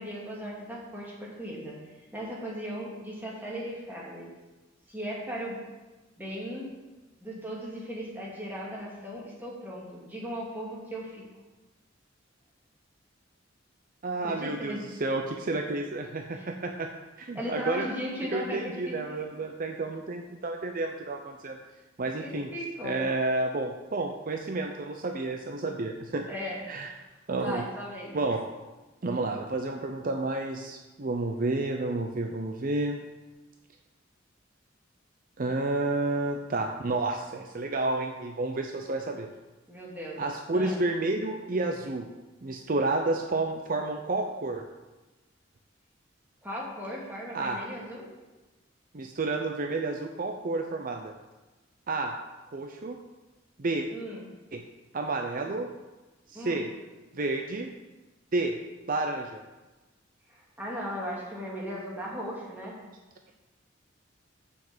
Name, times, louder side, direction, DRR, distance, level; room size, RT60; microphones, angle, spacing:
voice 1, 0.0-1.8 2.1-4.3 4.9-5.6 6.2-6.7 7.2-11.2 14.2-14.8 16.3-16.5 17.3-19.0 22.0-23.0 26.3-27.0 27.4-28.1 39.7-40.2 40.5-40.8 46.4-48.1 53.9-54.2 56.3-56.6 60.3-62.8, equal, 10° right, -5 dB, 2.4 m, -37 dB
voice 2, 14.0-16.9 17.2-17.9 18.3-21.6 22.0-22.5 22.8-26.3 26.7-26.9 27.3-27.6 28.1-28.4 29.0-33.0 35.4-39.3 40.2-42.1 42.4-44.7 47.3-47.6 48.9-51.1 51.9-52.1 52.5-53.0 53.6-53.9 54.5-54.6 54.9-55.7 56.3-56.7 57.1-57.7 58.3-58.5 58.9-59.4, right 2 dB, 45° right, 4 dB, 0.6 m, -30 dB
7.1 x 6.1 x 7.2 m, 1.2 s
head